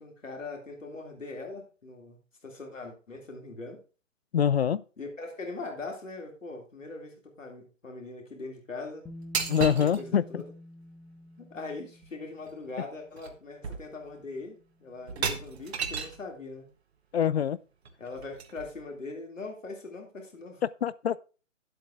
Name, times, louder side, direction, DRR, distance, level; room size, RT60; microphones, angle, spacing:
voice 1, 0.0-2.2 2.4-3.8 5.0-9.0 9.8-10.5 11.4-16.7 18.0-20.6, left 3 dB, 75° left, 3.3 m, -41 dB
voice 2, 4.3-4.8 9.5-10.2 17.1-17.6 20.8-21.2, left 8 dB, 55° left, 0.5 m, -24 dB
Bass guitar, 9.0-13.0 14.1-14.2, left 1 dB, 5° left, 0.8 m, -48 dB
sound 1, 9.3-10.0 12.0-12.1 12.5-12.7 13.1-13.4 13.6-14.2 15.1-16.2 17.9-18.8, right 5 dB, 55° right, 1.3 m, -34 dB
10.5 x 7.8 x 3.5 m
figure-of-eight pair, 140°, 39 cm